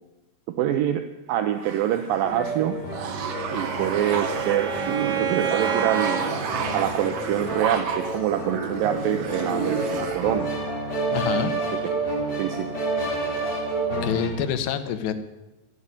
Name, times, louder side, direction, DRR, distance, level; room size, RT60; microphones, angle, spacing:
voice 1, 0.6-1.0 1.3-2.8 3.5-6.2 6.7-10.5 12.4-12.7, right 11 dB, 80° right, 8 dB, 2.0 m, -25 dB
sound 1, 1.5-10.4, right 6 dB, 60° right, 1.7 m, -31 dB
sound 2, 2.2-14.3, right 2 dB, 25° left, 4.0 m, -30 dB
Bowed string instrument, 3.1-6.3, right 8 dB, 45° right, 2.6 m, -29 dB
voice 2, 11.1-11.5 14.0-15.1, left 8 dB, 85° left, 10 dB, 3.2 m, -26 dB
13.5 x 8.7 x 9.8 m, 1.0 s
omnidirectional pair, 4.8 m